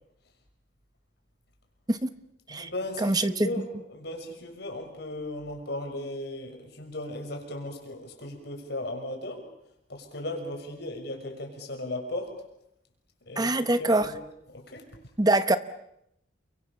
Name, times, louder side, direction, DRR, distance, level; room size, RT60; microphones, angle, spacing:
voice 1, 2.5-9.5 9.9-12.3 13.3-14.2 14.5-14.9, left 1 dB, 60° left, 3 dB, 6.4 m, -36 dB
voice 2, 3.0-3.5 13.4-14.1 15.2-15.6, right 2 dB, 20° right, 11 dB, 1.0 m, -24 dB
30.0 x 23.5 x 6.9 m, 0.79 s
head